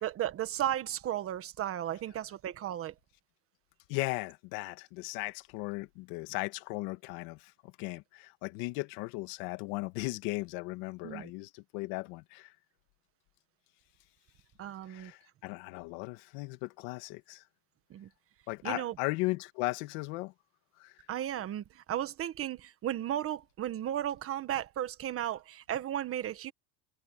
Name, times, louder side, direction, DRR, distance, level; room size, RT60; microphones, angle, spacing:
voice 1, 0.0-2.9 11.0-11.3 14.6-15.1 17.9-18.1 18.6-18.9 21.1-26.5, right 11 dB, 35° right, 1.4 m, -35 dB
voice 2, 3.9-12.5 14.9-17.4 18.5-20.3 20.8-20.9, left 22 dB, 75° left, 1.8 m, -37 dB
cardioid pair, 155°, 38 cm